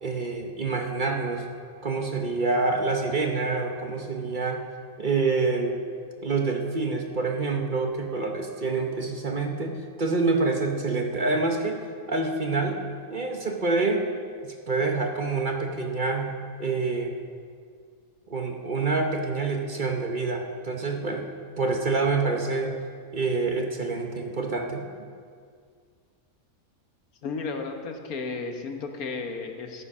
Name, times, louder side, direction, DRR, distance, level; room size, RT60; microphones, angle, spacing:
voice 1, 0.0-1.4 1.8-4.6 5.0-5.8 6.2-12.8 13.1-14.0 14.4-16.3 16.6-17.2 18.3-21.3 21.6-22.8 23.1-24.8, right 3 dB, 40° right, 2 dB, 1.0 m, -27 dB
voice 2, 27.2-29.8, left 4 dB, 85° left, 4 dB, 1.6 m, -33 dB
13.5 x 9.9 x 5.5 m, 2.1 s
omnidirectional pair, 1.5 m